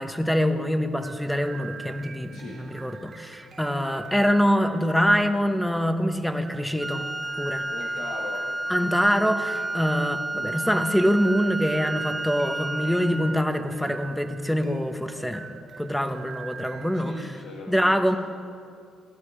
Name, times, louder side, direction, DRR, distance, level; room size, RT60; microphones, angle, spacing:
voice 1, 0.0-7.0 7.4-7.6 8.7-15.5 15.8-17.3 17.7-18.2, equal, ahead, 8 dB, 1.1 m, -24 dB
sound 1, 1.0-17.2, right 5 dB, 40° right, 1.0 m, -44 dB
voice 2, 2.3-2.6 7.7-8.4 16.9-18.2, left 3 dB, 90° left, -3 dB, 1.6 m, -40 dB
Wind instrument woodwind instrument, 6.8-13.4, right 2 dB, 15° right, 0.5 m, -31 dB
18.0 x 12.0 x 5.0 m, 2.3 s
cardioid pair, 85°, 0 cm